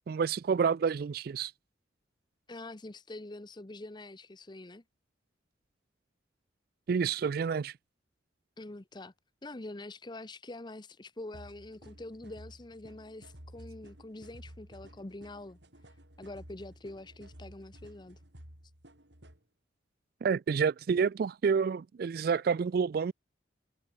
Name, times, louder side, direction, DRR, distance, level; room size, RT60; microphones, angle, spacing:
voice 1, 0.1-1.5 6.9-7.7 20.2-23.1, right 6 dB, 55° right, 0.3 m, -29 dB
voice 2, 2.5-4.8 8.6-9.1 9.4-15.6 16.2-18.2, left 2 dB, 25° left, 0.8 m, -45 dB
sound 1, 11.3-19.4, equal, 70° right, 7.9 m, -53 dB
head